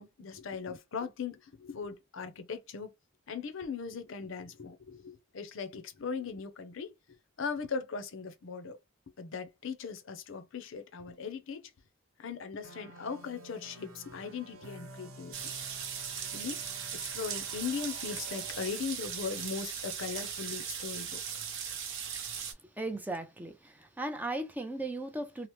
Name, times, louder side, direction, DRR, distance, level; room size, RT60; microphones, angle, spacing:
voice 1, 0.0-2.9 3.3-6.9 7.4-8.8 9.2-11.7 12.2-15.5 16.3-16.6 16.9-21.2, left 5 dB, 65° left, 0.5 m, -39 dB
sound 1, 12.6-18.8, right 2 dB, 85° right, 0.9 m, -51 dB
sound 2, 15.3-22.5, right 7 dB, 60° right, 0.7 m, -38 dB
voice 2, 22.6-25.5, right 2 dB, 10° right, 0.4 m, -37 dB
2.9 x 2.0 x 3.0 m
head